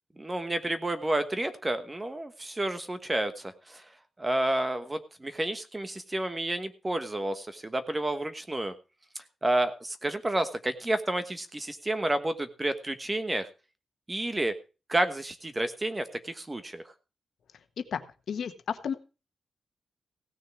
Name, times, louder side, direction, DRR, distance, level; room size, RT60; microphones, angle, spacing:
voice 1, 0.2-3.8 4.2-8.7 9.4-13.5 14.1-14.5 14.9-16.8, right 1 dB, 15° right, 10 dB, 1.2 m, -30 dB
voice 2, 18.3-18.9, left 7 dB, 75° left, 9 dB, 1.3 m, -32 dB
16.5 x 6.6 x 5.9 m, 0.33 s
wide cardioid pair, 130°, 0 cm